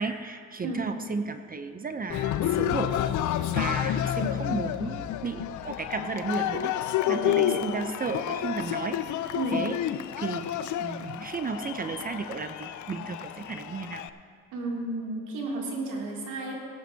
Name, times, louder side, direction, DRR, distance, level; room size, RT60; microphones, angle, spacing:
voice 1, 0.0-3.0 3.5-9.8 10.2-14.1, right 4 dB, 30° right, 9 dB, 0.6 m, -34 dB
Cheering, 2.1-14.1, left 11 dB, 75° left, 0.5 m, -30 dB
voice 2, 7.0-7.8 9.3-9.6 14.5-16.5, right 2 dB, 90° right, -3 dB, 2.9 m, -32 dB
19.0 x 11.5 x 2.8 m, 2.4 s
cardioid pair, 90°, 30 cm